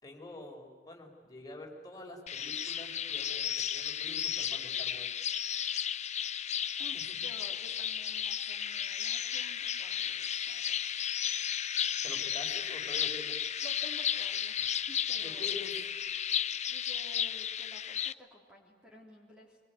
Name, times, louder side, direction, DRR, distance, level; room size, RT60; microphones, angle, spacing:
voice 1, 0.0-5.1 6.9-7.0 12.0-13.4 15.1-15.8, left 2 dB, 20° left, 1 dB, 5.2 m, -47 dB
sound 1, 2.3-18.1, left 9 dB, 40° left, 0.7 m, -34 dB
voice 2, 6.8-11.0 13.6-15.5 16.7-19.6, equal, 5° right, -1 dB, 3.7 m, -53 dB
25.5 x 23.0 x 9.6 m, 1.5 s
head